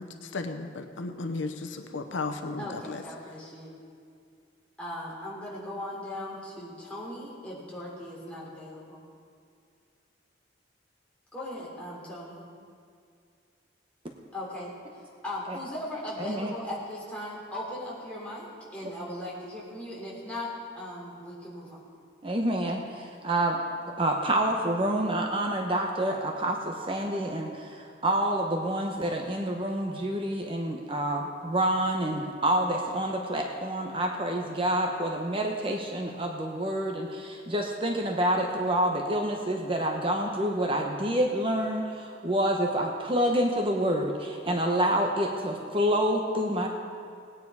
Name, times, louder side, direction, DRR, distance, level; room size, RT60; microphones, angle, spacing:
voice 1, 0.0-3.0, left 3 dB, 80° left, 7 dB, 0.8 m, -35 dB
voice 2, 2.6-3.7 4.8-9.0 11.3-12.4 14.3-21.8, left 1 dB, 5° left, -6 dB, 3.3 m, -38 dB
voice 3, 16.2-16.5 22.2-23.6 24.0-46.7, right 1 dB, 30° right, 2 dB, 0.9 m, -28 dB
18.5 x 9.7 x 4.8 m, 2.3 s
head